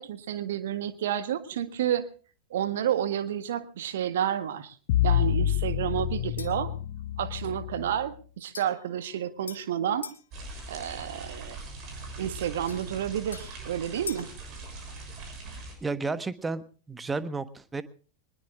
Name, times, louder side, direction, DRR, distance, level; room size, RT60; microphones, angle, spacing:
voice 1, 0.0-2.0 2.5-4.8 5.0-6.7 7.2-10.1 10.7-11.6 12.2-14.3, right 10 dB, 60° right, 12 dB, 1.6 m, -30 dB
sound 1, 4.9-8.0, left 11 dB, 50° left, 1.0 m, -27 dB
sound 2, 6.4-6.7 8.5-10.3 12.7-14.4, left 5 dB, 70° left, 1.6 m, -44 dB
sound 3, 10.3-15.7, right 3 dB, 35° right, 6.6 m, -41 dB
voice 2, 15.8-17.8, right 3 dB, 15° right, 14 dB, 1.2 m, -32 dB
23.0 x 20.5 x 2.5 m, 0.40 s
figure-of-eight pair, 90°, 0 cm